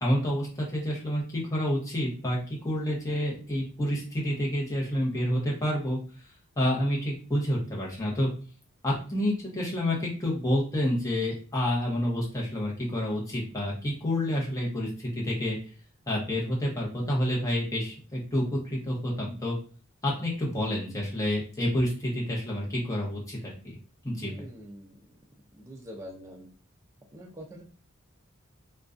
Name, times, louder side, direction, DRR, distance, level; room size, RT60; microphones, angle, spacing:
voice 1, 0.0-6.0 6.6-8.3 8.8-15.6 16.1-19.6 20.0-23.8 24.0-24.5, equal, 15° left, -4 dB, 0.7 m, -29 dB
voice 2, 24.2-24.9 25.6-26.5 27.1-27.6, equal, 15° right, -1 dB, 0.3 m, -44 dB
2.5 x 2.2 x 2.4 m, 0.40 s
head